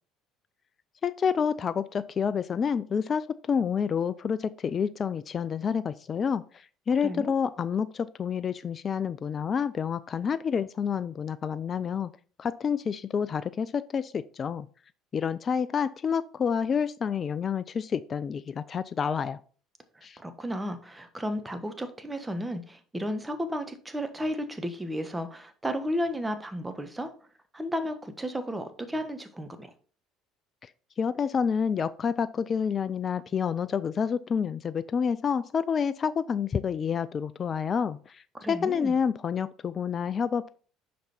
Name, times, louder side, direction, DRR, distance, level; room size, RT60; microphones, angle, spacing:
voice 1, 1.0-12.1 12.4-14.7 15.1-19.4 20.0-20.2 30.6-30.7 31.0-40.5, left 6 dB, 40° left, 15 dB, 0.3 m, -28 dB
voice 2, 20.2-27.1 27.5-29.7 38.3-38.9, equal, 10° right, 7 dB, 1.1 m, -33 dB
5.9 x 5.2 x 4.3 m, 0.42 s
hypercardioid pair, 60°, 0 cm